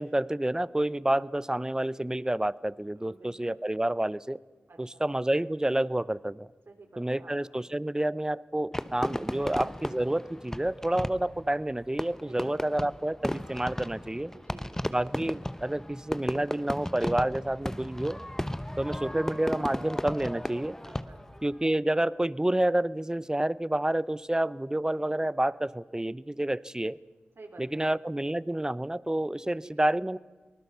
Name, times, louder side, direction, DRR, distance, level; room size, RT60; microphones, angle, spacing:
voice 1, 0.0-4.4 4.8-6.5 7.0-14.3 14.9-18.2 18.8-20.8 21.4-27.0 27.6-30.2, right 1 dB, 15° right, 19 dB, 0.7 m, -29 dB
voice 2, 3.0-3.6 4.7-5.0 6.7-7.4 9.4-9.6 12.2-12.7 14.3-14.8 20.8-21.2 27.4-27.9 29.4-29.9, right 3 dB, 65° right, 3 dB, 4.1 m, -51 dB
Fireworks, 8.7-21.4, left 1 dB, 10° left, 1.0 m, -35 dB
23.5 x 19.5 x 6.9 m, 1.3 s
cardioid pair, 40°, 4 cm